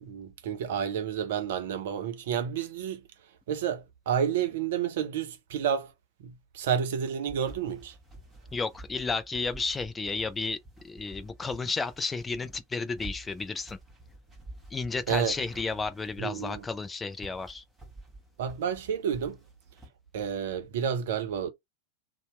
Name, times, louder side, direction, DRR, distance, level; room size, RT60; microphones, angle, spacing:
voice 1, 0.0-3.0 3.5-5.9 6.2-7.9 15.1-15.3 16.2-16.6 18.4-19.4 20.1-21.5, right 8 dB, 55° right, 0.6 m, -30 dB
sound 1, 7.3-19.9, right 2 dB, 10° right, 1.2 m, -49 dB
voice 2, 8.5-10.6 10.8-13.8 14.7-17.6, left 4 dB, 15° left, 0.3 m, -32 dB
2.7 x 2.0 x 3.1 m
figure-of-eight pair, 90°, 0 cm